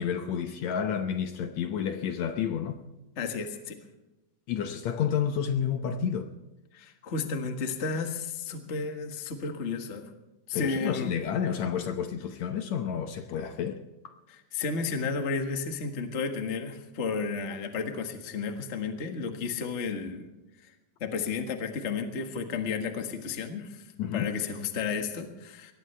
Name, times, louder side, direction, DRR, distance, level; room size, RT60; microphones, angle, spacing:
voice 1, 0.0-2.8 4.5-6.3 10.5-14.1 24.0-24.3, left 8 dB, 70° left, 7 dB, 2.0 m, -30 dB
voice 2, 3.2-3.8 6.7-10.1 10.5-11.1 14.3-20.3 20.6-20.7 21.0-25.7, left 5 dB, 35° left, 5 dB, 1.2 m, -33 dB
22.5 x 19.0 x 3.4 m, 1.0 s
omnidirectional pair, 3.7 m